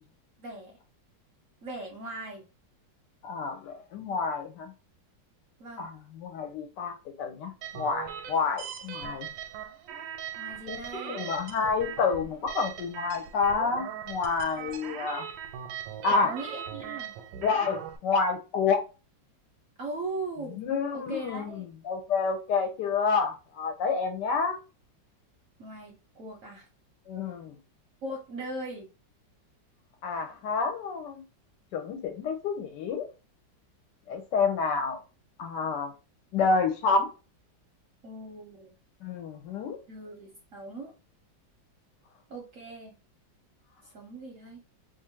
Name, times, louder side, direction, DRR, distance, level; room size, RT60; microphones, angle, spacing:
voice 1, 0.4-0.7 1.6-2.4 5.6-5.9 10.4-11.3 16.1-17.1 19.8-20.6 20.9-21.7 25.6-26.7 28.0-28.9 38.0-38.8 39.9-40.9 42.3-42.9 43.8-44.6, right 2 dB, 60° right, 0.8 m, -39 dB
voice 2, 3.2-4.7 5.8-9.3 10.7-10.8 11.1-15.3 16.0-16.3 17.4-18.8 20.6-24.6 27.1-27.6 30.0-31.2 31.7-33.1 34.1-35.0 35.4-35.9 36.3-37.1 39.0-39.8, left 5 dB, 70° left, 1.2 m, -29 dB
sound 1, 7.6-18.0, right 9 dB, 85° right, 1.3 m, -40 dB
3.0 x 2.5 x 4.4 m
omnidirectional pair, 2.0 m